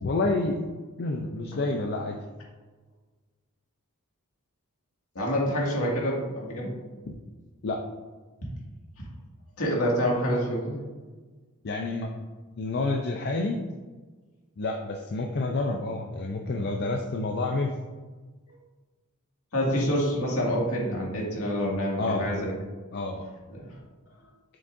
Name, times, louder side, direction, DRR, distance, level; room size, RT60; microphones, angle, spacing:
voice 1, 0.0-0.6 1.0-2.2 7.1-7.2 7.6-7.8 11.6-12.3 12.6-13.6 14.6-17.7 22.0-22.4 22.9-23.3, left 2 dB, 50° left, 2 dB, 0.5 m, -29 dB
voice 2, 5.2-6.7 9.6-10.8 19.5-22.5 23.5-23.7, equal, 70° left, -3 dB, 2.1 m, -27 dB
7.1 x 6.8 x 2.6 m, 1.3 s
head